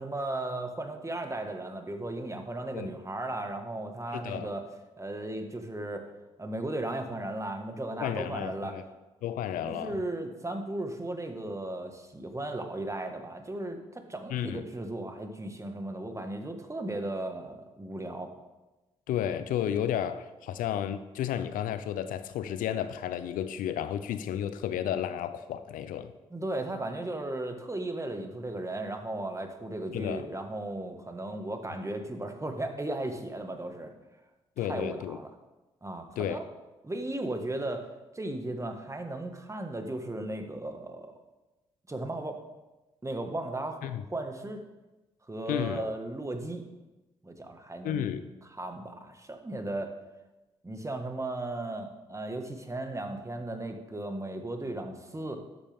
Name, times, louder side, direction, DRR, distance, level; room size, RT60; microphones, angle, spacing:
voice 1, 0.0-4.6 5.0-6.1 6.4-8.7 9.6-18.3 26.3-33.9 34.6-35.3 35.8-36.4 36.8-37.9 38.1-41.2 41.9-42.4 43.0-43.8 44.1-44.6 45.3-46.7 47.2-48.1 48.5-49.9 50.6-55.4, right 1 dB, 20° right, 5 dB, 1.7 m, -36 dB
voice 2, 4.1-4.5 8.0-8.8 9.2-10.0 14.3-14.6 19.1-26.1 29.9-30.2 34.6-35.2 36.2-36.4 43.8-44.0 45.5-45.8 47.8-48.2, left 10 dB, 75° left, 12 dB, 0.6 m, -32 dB
12.0 x 8.4 x 3.6 m, 1.1 s
hypercardioid pair, 45°, 14 cm